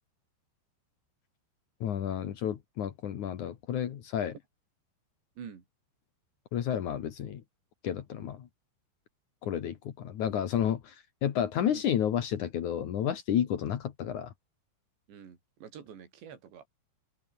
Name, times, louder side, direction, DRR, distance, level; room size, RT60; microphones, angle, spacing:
voice 1, 1.8-4.3 6.5-7.4 7.8-8.5 9.4-14.3, left 9 dB, 65° left, 1.9 m, -31 dB
voice 2, 15.1-16.7, right 7 dB, 60° right, 6.5 m, -47 dB
open air
omnidirectional pair, 5.9 m